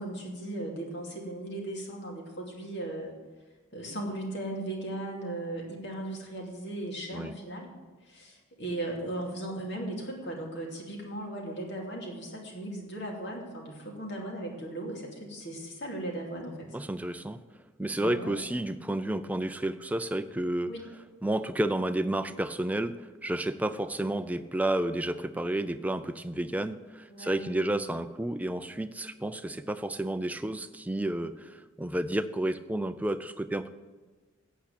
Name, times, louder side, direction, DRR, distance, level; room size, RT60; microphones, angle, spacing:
voice 1, 0.0-3.1 3.7-7.8 8.0-16.8 17.9-18.4 20.7-20.8 27.1-27.7, right 1 dB, 55° left, 0 dB, 2.7 m, -37 dB
voice 2, 16.7-17.4 17.8-20.7 21.2-33.7, right 1 dB, 5° right, 10 dB, 0.4 m, -31 dB
8.7 x 8.1 x 8.4 m, 1.4 s
head